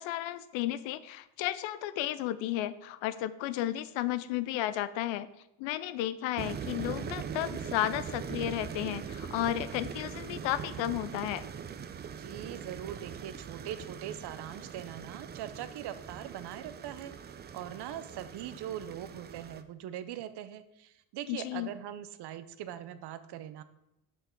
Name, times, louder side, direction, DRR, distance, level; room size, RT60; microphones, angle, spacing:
voice 1, 0.0-5.3 5.6-11.4 21.3-21.8, left 13 dB, 70° left, 15 dB, 0.6 m, -33 dB
sound 1, 6.4-19.6, right 7 dB, 25° right, 0.4 m, -41 dB
voice 2, 12.1-17.1 17.5-23.6, right 11 dB, 55° right, 12 dB, 0.7 m, -41 dB
6.3 x 5.6 x 4.4 m, 0.88 s
supercardioid pair, 95°, 48 cm